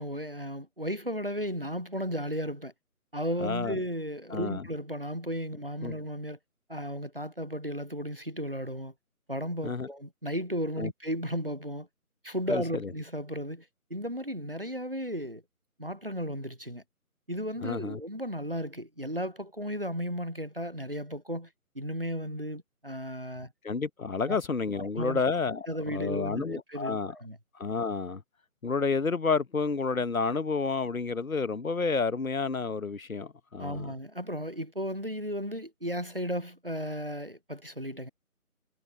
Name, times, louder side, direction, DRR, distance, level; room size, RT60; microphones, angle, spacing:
voice 1, 0.0-2.7 3.1-6.4 6.7-8.9 9.3-11.9 12.2-13.7 13.9-15.4 15.8-16.8 17.3-21.5 21.8-23.5 24.2-24.4 24.8-25.2 25.7-27.4 33.6-38.1, equal, 40° right, 0.4 m, -34 dB
voice 2, 3.4-3.8 4.3-4.7 5.8-5.9 9.6-9.9 10.8-10.9 12.5-12.9 17.6-18.0 23.6-27.1 27.6-28.2 28.6-33.9, left 4 dB, 65° left, 1.1 m, -30 dB
figure-of-eight pair, 160°, 44 cm